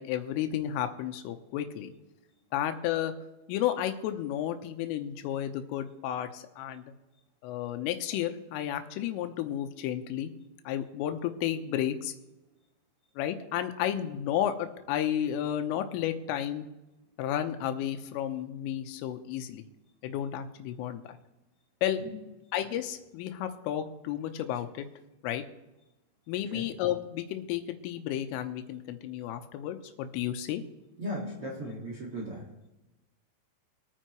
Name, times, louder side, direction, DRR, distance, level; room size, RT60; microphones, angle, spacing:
voice 1, 0.0-1.9 2.5-3.1 3.5-6.9 7.4-10.3 10.7-12.1 13.2-16.7 17.2-19.6 20.0-21.2 21.8-22.0 22.5-24.9 25.2-25.4 26.3-30.6, left 11 dB, 85° left, 7 dB, 3.5 m, -32 dB
voice 2, 31.0-32.4, equal, 60° right, -3 dB, 1.4 m, -36 dB
23.5 x 9.2 x 3.1 m, 1.0 s
omnidirectional pair, 5.8 m